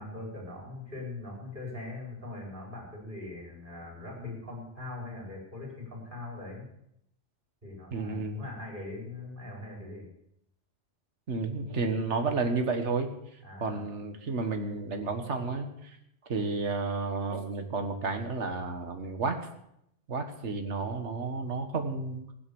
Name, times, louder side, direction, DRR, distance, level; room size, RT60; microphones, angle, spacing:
voice 1, 0.0-6.7 7.6-10.1 13.4-13.8, left 2 dB, 45° right, -2 dB, 5.2 m, -41 dB
voice 2, 7.9-8.4 11.3-13.1 13.6-16.0 16.3-19.4 20.1-22.2, right 4 dB, 70° right, 6 dB, 1.9 m, -31 dB
16.0 x 9.6 x 7.1 m, 0.76 s
omnidirectional pair, 1.2 m